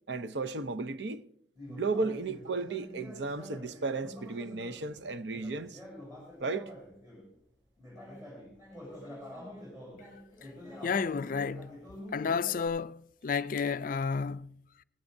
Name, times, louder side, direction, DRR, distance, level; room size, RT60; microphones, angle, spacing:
voice 1, 0.1-1.3 1.7-5.8 6.4-6.7, right 3 dB, 75° right, 0.7 m, -34 dB
Conversation, 1.5-7.3 7.8-12.7, left 1 dB, 20° right, 7.3 m, -47 dB
voice 2, 10.8-11.8 12.1-14.8, left 5 dB, 50° left, 0.4 m, -32 dB
18.5 x 17.0 x 2.7 m
head